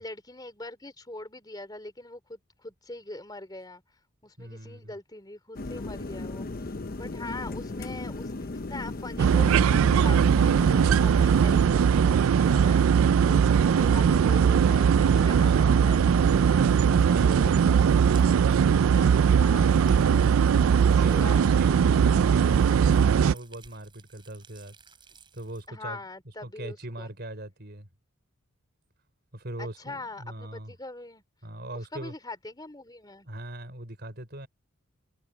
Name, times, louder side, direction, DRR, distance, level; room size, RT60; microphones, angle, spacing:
voice 1, 0.0-3.8 4.2-6.7 7.0-16.6 17.1-17.5 19.0-20.4 20.7-21.8 25.7-27.1 29.6-31.2 31.9-33.3, left 2 dB, 20° left, 3.1 m, -43 dB
voice 2, 4.4-4.9 15.3-16.2 16.5-18.2 20.9-24.8 25.3-26.0 26.4-27.9 29.3-30.7 31.4-32.1 33.2-34.5, right 1 dB, 50° right, 4.8 m, -40 dB
sound 1, 5.5-11.7, left 2 dB, 40° left, 0.7 m, -36 dB
sound 2, 9.2-23.3, right 7 dB, 70° right, 0.3 m, -20 dB
sound 3, 16.6-25.7, right 5 dB, 20° right, 7.7 m, -57 dB
head